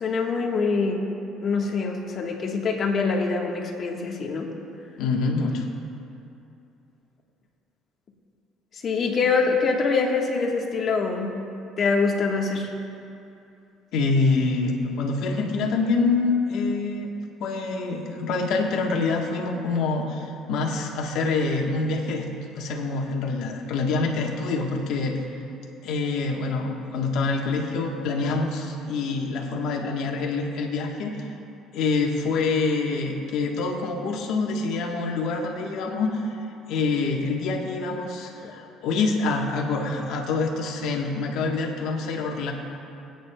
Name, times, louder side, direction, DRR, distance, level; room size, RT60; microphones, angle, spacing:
voice 1, 0.0-1.0 1.4-4.5 8.7-11.3 11.8-12.7 38.4-38.5, left 4 dB, 45° left, 1 dB, 1.4 m, -24 dB
voice 2, 5.0-5.7 13.9-17.1 17.4-22.2 22.5-25.2 25.8-31.3 31.7-36.4 36.7-42.5, left 3 dB, 75° left, 1 dB, 1.2 m, -26 dB
21.0 x 9.0 x 2.3 m, 2.7 s
cardioid pair, 105°, 0 cm